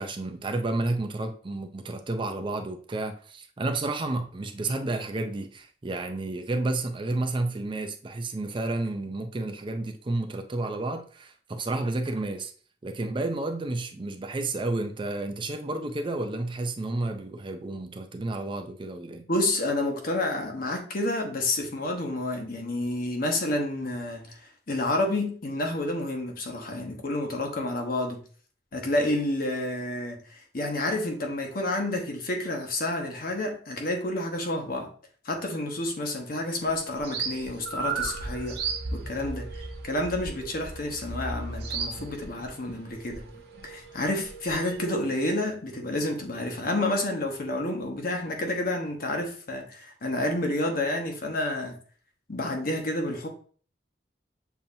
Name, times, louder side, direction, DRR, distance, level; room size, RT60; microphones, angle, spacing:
voice 1, 0.0-12.5 12.8-19.3, right 2 dB, 30° right, 0.4 m, -31 dB
voice 2, 19.3-28.2 28.7-34.9 35.2-38.6 38.9-39.5 39.8-43.2 43.6-51.8 52.3-53.3, left 1 dB, 55° left, 1.0 m, -29 dB
sound 1, 36.6-44.8, right 4 dB, 65° right, 0.8 m, -36 dB
7.0 x 2.8 x 2.7 m
head